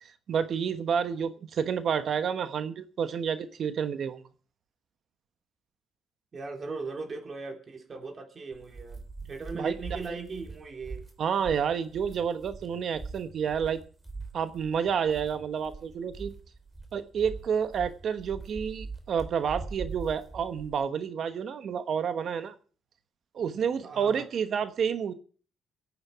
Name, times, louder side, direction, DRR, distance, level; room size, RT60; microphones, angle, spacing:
voice 1, 0.0-4.2 9.5-9.7 10.1-10.2 11.2-13.8 14.3-16.3 16.9-22.5 23.3-25.1, right 7 dB, 60° right, 11 dB, 1.1 m, -29 dB
voice 2, 6.3-9.0 9.3-11.0 23.8-24.2, right 4 dB, 40° right, 4 dB, 3.4 m, -38 dB
sound 1, 8.5-20.9, right 4 dB, 15° right, 2.9 m, -43 dB
24.0 x 8.7 x 4.8 m, 0.42 s
cardioid pair, 90°, 0 cm